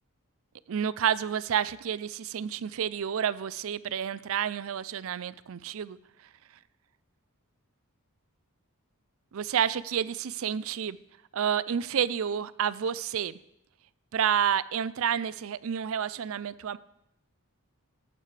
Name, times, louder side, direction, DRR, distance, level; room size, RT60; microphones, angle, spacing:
voice 1, 0.7-6.0 9.3-11.0 11.3-13.3 14.1-16.8, right 8 dB, 65° right, 18 dB, 0.4 m, -29 dB
16.5 x 9.5 x 3.3 m, 0.82 s
head